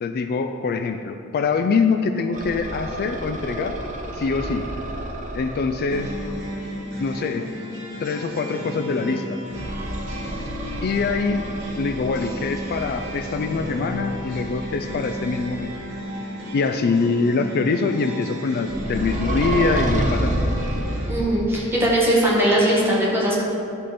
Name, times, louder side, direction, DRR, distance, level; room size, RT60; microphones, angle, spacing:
voice 1, 0.0-3.8 4.1-4.7 5.3-6.1 7.0-7.5 8.0-9.4 10.8-11.4 11.8-15.7 16.5-20.4, left 4 dB, 45° left, 7 dB, 0.3 m, -24 dB
sound 1, 2.3-6.4 9.5-15.8 18.6-21.5, right 1 dB, 35° right, 0.8 m, -30 dB
sound 2, 5.9-21.1, equal, 60° right, 2.0 m, -34 dB
voice 2, 21.1-23.4, right 1 dB, 10° right, -6 dB, 1.8 m, -20 dB
11.0 x 5.2 x 4.3 m, 2.8 s
head